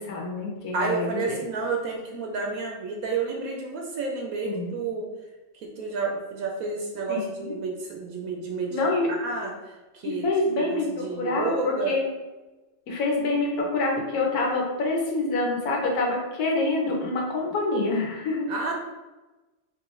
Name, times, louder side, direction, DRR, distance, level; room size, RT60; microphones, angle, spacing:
voice 1, 0.0-1.4 4.5-4.8 7.1-7.5 8.7-9.1 10.0-12.1 12.9-18.5, left 2 dB, 85° left, -1 dB, 1.3 m, -26 dB
voice 2, 0.7-5.1 5.6-8.8 9.2-9.5 9.9-10.3 10.6-12.0 18.5-18.7, right 4 dB, 75° right, 0 dB, 1.0 m, -30 dB
3.8 x 3.0 x 3.1 m, 1.1 s
omnidirectional pair, 1.6 m